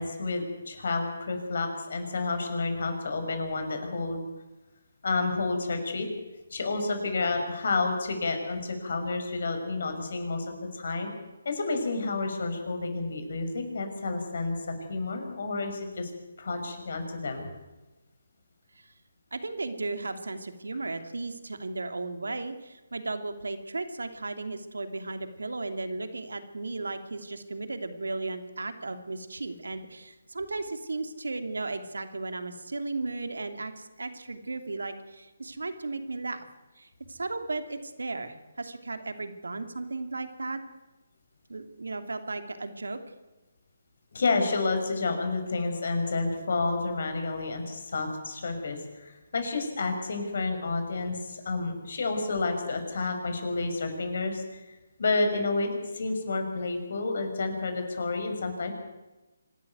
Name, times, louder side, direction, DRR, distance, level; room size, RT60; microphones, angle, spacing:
voice 1, 0.0-4.2 5.0-6.1 6.5-11.1 11.4-16.1 16.4-17.5 44.1-54.6 55.0-58.7, left 3 dB, 60° left, 5 dB, 5.8 m, -30 dB
voice 2, 19.3-36.4 36.8-40.6 41.5-43.0, right 3 dB, 85° right, 8 dB, 2.8 m, -35 dB
25.5 x 13.0 x 9.4 m, 1.1 s
hypercardioid pair, 155°, 0 cm